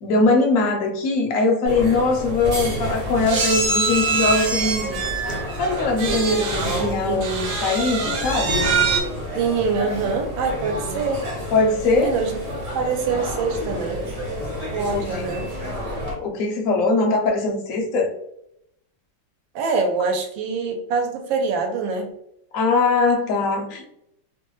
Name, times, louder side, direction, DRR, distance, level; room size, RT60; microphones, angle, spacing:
voice 1, 0.0-5.0 5.6-8.7 11.5-12.1 14.9-15.3 16.2-18.1 22.5-23.9, left 3 dB, 70° left, 2 dB, 0.8 m, -21 dB
sound 1, 1.7-16.1, equal, 40° right, 1.2 m, -30 dB
sound 2, 1.8-1.9 2.1-2.3 3.3-6.8 7.2-9.0, right 4 dB, 65° right, 1.2 m, -24 dB
voice 2, 6.8-7.2 9.3-11.2 11.9-12.4 12.7-14.0 14.7-15.5 19.5-22.1, right 4 dB, 85° right, 4 dB, 1.4 m, -24 dB
3.1 x 2.2 x 3.0 m, 0.76 s
omnidirectional pair, 2.1 m